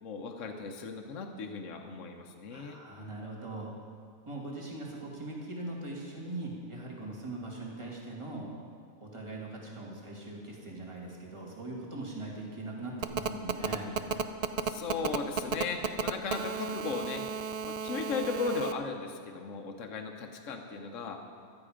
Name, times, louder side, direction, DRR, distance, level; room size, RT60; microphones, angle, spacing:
voice 1, 0.0-2.8 14.6-17.2 17.6-21.2, left 4 dB, 65° left, 3 dB, 1.3 m, -36 dB
voice 2, 2.5-3.7 4.3-8.5 9.0-13.9, right 2 dB, 20° right, -3 dB, 2.4 m, -41 dB
Telephone, 13.0-18.7, right 6 dB, 65° right, 0.3 m, -33 dB
16.0 x 12.0 x 5.0 m, 2.1 s
omnidirectional pair, 1.5 m